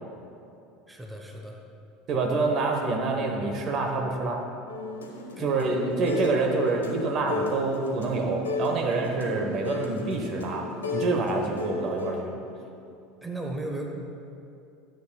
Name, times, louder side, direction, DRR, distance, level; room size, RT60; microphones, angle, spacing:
voice 1, 0.9-1.6 5.4-5.5 13.2-13.9, right 2 dB, 10° right, 1 dB, 0.9 m, -35 dB
voice 2, 2.1-4.4 5.4-12.3, right 3 dB, 40° right, 2 dB, 1.0 m, -27 dB
sound 1, 4.7-6.4 6.7-12.1, left 3 dB, 75° left, 1.0 m, -34 dB
13.0 x 7.7 x 2.3 m, 2.6 s
figure-of-eight pair, 70°, 0 cm